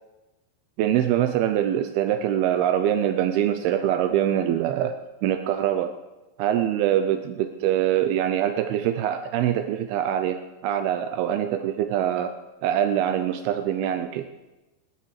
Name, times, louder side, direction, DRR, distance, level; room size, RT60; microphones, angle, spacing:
voice 1, 0.8-4.9 5.2-5.9 6.4-12.3 12.6-14.3, right 11 dB, 80° right, 8 dB, 2.5 m, -24 dB
20.0 x 17.0 x 3.2 m, 1.1 s
omnidirectional pair, 4.5 m